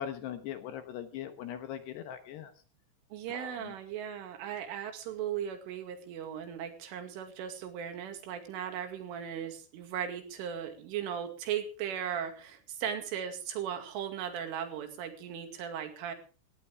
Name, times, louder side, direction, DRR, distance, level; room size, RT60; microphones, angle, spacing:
voice 1, 0.0-2.5 3.3-3.7, left 9 dB, 70° left, 8 dB, 2.8 m, -40 dB
voice 2, 3.1-16.1, right 9 dB, 70° right, 7 dB, 4.7 m, -37 dB
18.0 x 17.0 x 3.6 m, 0.36 s
omnidirectional pair, 5.9 m